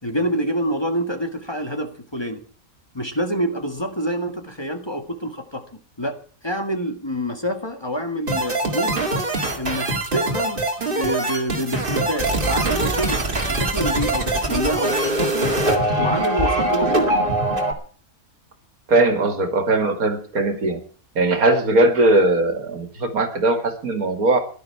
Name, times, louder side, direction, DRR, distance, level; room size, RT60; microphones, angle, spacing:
voice 1, 0.0-2.4 2.9-5.6 6.0-6.2 6.4-9.0 9.5-13.2 13.5-15.5 16.0-17.2, equal, 20° left, 4 dB, 1.6 m, -27 dB
sound 1, 8.3-17.7, right 2 dB, 40° right, 2.3 m, -22 dB
voice 2, 18.9-20.8 21.2-24.4, right 2 dB, 80° right, 6 dB, 2.6 m, -19 dB
17.5 x 12.0 x 4.8 m, 0.42 s
omnidirectional pair, 1.5 m